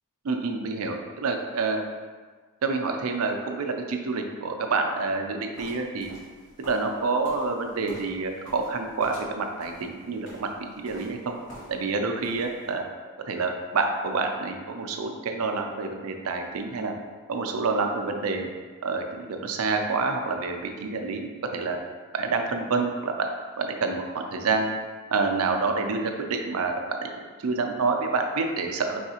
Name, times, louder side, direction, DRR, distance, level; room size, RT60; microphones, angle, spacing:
voice 1, 0.2-1.8 2.6-6.1 6.6-10.5 10.8-11.3 11.7-12.9 13.2-16.9 17.3-18.5 18.8-21.8 22.1-23.3 23.6-24.7 25.1-27.1 27.4-29.0, right 4 dB, 75° right, 4 dB, 0.5 m, -28 dB
sound 1, 5.5-11.9 12.2-12.7, right 1 dB, 55° left, 1.5 m, -47 dB
4.7 x 3.4 x 2.8 m, 1.5 s
head